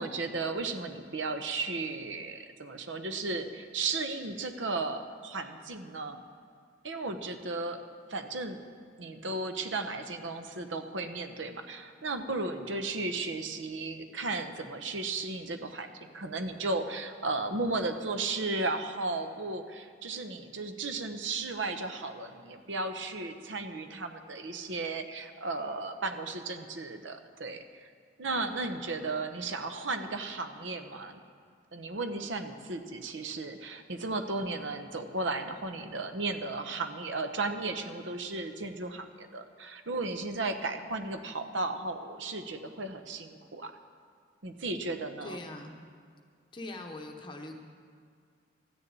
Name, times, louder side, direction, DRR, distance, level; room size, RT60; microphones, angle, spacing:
voice 1, 0.0-6.2 6.8-7.8 8.1-8.6 9.0-27.9 28.2-31.2 31.7-43.7 44.4-45.4, right 3 dB, 90° right, 7 dB, 1.0 m, -35 dB
voice 2, 45.2-45.8 46.5-47.6, left 2 dB, 25° left, 3 dB, 1.1 m, -42 dB
13.0 x 6.8 x 8.7 m, 2.2 s
head